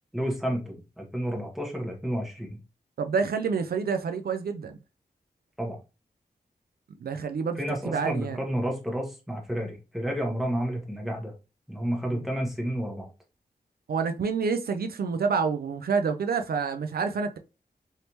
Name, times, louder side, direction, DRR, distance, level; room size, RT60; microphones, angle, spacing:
voice 1, 0.1-2.6 5.6-5.8 7.6-11.3 11.7-13.1, equal, ahead, 1.1 m, -31 dB
voice 2, 3.0-4.7 7.0-7.6 7.9-8.4 12.1-12.2 13.9-17.4, right 5 dB, 70° right, 0.4 m, -28 dB
3.2 x 2.7 x 3.0 m
wide cardioid pair, 105°, 16 cm